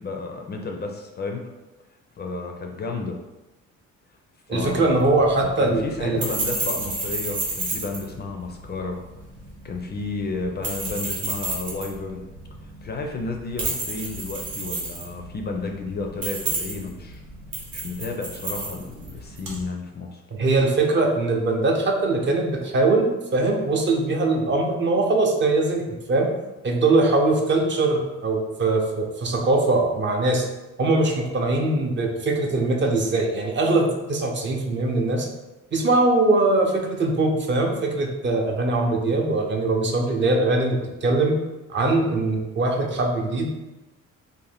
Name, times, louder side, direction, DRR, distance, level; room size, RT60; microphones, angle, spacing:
voice 1, 0.0-1.4 2.2-3.2 4.5-4.9 5.4-9.0 9.6-12.2 12.8-17.2 17.7-20.2, left 3 dB, 35° left, 2 dB, 0.4 m, -32 dB
voice 2, 4.5-6.2 20.4-25.8 26.1-26.3 26.6-30.5 30.8-35.3 35.7-41.4 41.7-43.6, right 2 dB, 40° right, 1 dB, 0.5 m, -21 dB
sound 1, 4.5-19.6, right 2 dB, 90° right, 0.8 m, -32 dB
2.6 x 2.1 x 3.3 m, 1.0 s
cardioid pair, 90°, 30 cm